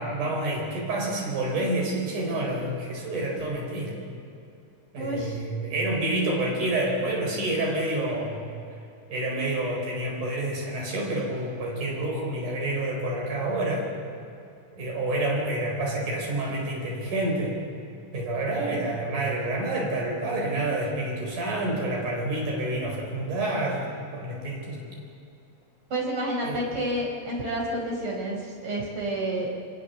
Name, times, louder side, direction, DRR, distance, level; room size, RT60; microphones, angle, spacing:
voice 1, 0.0-4.0 4.9-8.4 9.1-13.9 14.8-17.6 18.1-24.8 26.4-26.6, right 1 dB, 75° right, -1 dB, 6.1 m, -28 dB
voice 2, 5.0-5.4 25.9-29.5, right 1 dB, 40° right, -1 dB, 5.4 m, -29 dB
24.5 x 22.0 x 7.0 m, 2.6 s
omnidirectional pair, 3.6 m